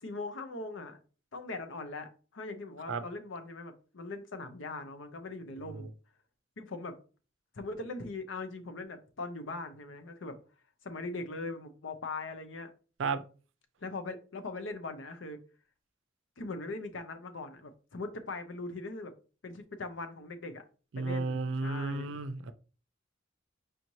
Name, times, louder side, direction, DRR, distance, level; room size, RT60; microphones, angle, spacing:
voice 1, 0.0-1.0 1.3-5.9 6.6-7.0 7.5-10.4 10.8-12.7 13.8-15.4 16.4-19.1 19.4-20.6 21.0-22.1, left 3 dB, 75° left, 0.7 m, -40 dB
voice 2, 20.9-22.5, right 3 dB, 75° right, 0.4 m, -33 dB
4.9 x 2.7 x 3.0 m
head